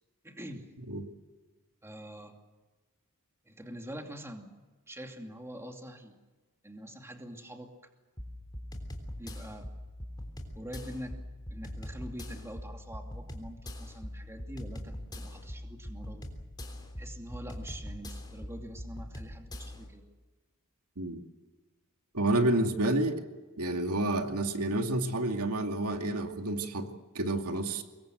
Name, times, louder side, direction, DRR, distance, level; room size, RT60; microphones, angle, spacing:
voice 1, 0.2-0.7 1.8-2.4 3.5-4.5 4.9-6.2 6.6-7.7 9.2-9.7 10.5-11.2 11.5-16.3 17.0-20.1, equal, 10° right, 3 dB, 2.6 m, -45 dB
sound 1, 8.2-19.9, left 1 dB, 20° left, 3.4 m, -42 dB
voice 2, 22.1-23.2 23.6-27.8, right 2 dB, 85° right, 4 dB, 2.5 m, -29 dB
25.0 x 22.0 x 7.8 m, 1.3 s
head